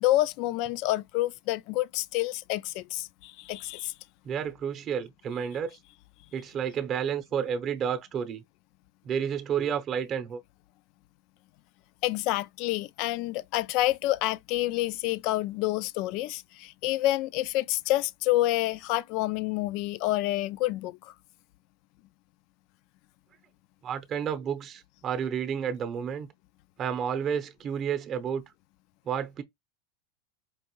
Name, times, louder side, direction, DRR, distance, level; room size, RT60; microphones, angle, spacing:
voice 1, 0.0-3.9 12.0-21.1, left 16 dB, 55° left, 0.3 m, -28 dB
voice 2, 4.2-5.8 6.3-8.4 9.0-10.4 23.8-26.3 26.8-28.4 29.1-29.4, right 8 dB, 35° right, 0.7 m, -31 dB
4.6 x 2.5 x 3.0 m
supercardioid pair, 120°, 0 cm